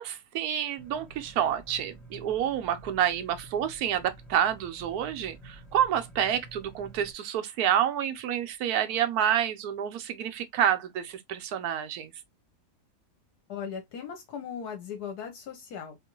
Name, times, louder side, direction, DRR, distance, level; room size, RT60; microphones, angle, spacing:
voice 1, 0.0-12.1, right 10 dB, 75° right, 1.1 m, -28 dB
sound 1, 0.8-7.1, right 2 dB, ahead, 0.8 m, -49 dB
voice 2, 13.5-16.1, left 7 dB, 75° left, 1.3 m, -38 dB
3.7 x 2.5 x 2.9 m
omnidirectional pair, 1.7 m